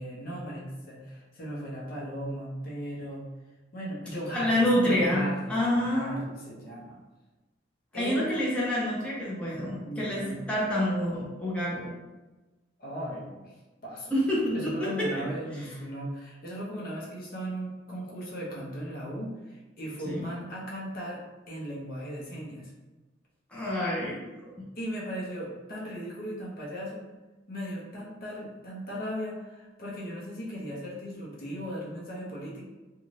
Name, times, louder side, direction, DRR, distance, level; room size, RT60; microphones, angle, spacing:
voice 1, 0.0-3.3 3.7-7.0 7.9-8.3 9.8-10.4 12.8-13.5 13.8-14.1 14.5-22.7 24.8-27.1 27.5-32.6, equal, 50° left, -4 dB, 0.7 m, -37 dB
voice 2, 4.3-6.2 7.9-11.9 14.1-15.3 20.1-20.3 23.5-24.3, left 1 dB, 5° left, -7 dB, 0.5 m, -27 dB
2.5 x 2.3 x 3.1 m, 1.2 s
head